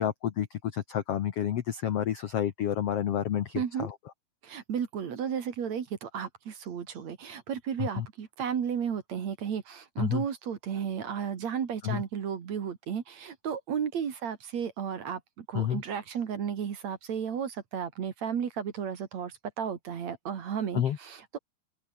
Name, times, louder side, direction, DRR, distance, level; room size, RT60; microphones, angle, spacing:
voice 1, 0.0-3.9 7.8-8.1 10.0-10.2 11.8-12.0 15.5-15.8 20.7-21.0, left 10 dB, 80° left, 1.3 m, -29 dB
voice 2, 3.5-3.9 4.4-21.4, right 7 dB, 50° right, 2.9 m, -33 dB
open air
omnidirectional pair, 4.5 m